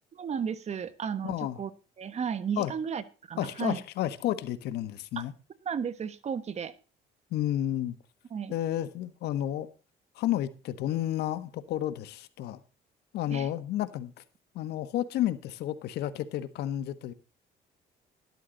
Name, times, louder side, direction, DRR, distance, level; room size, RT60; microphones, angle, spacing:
voice 1, 0.1-1.7 2.0-3.8 5.2-5.3 5.6-6.7 8.3-8.5 13.3-13.5, right 7 dB, 40° right, 1.3 m, -34 dB
voice 2, 1.2-1.6 2.6-2.7 3.4-5.3 7.3-8.0 8.5-9.7 10.1-12.6 13.1-14.2 14.5-17.1, left 12 dB, 80° left, 1.4 m, -31 dB
13.0 x 12.5 x 4.0 m
cardioid pair, 110°, 17 cm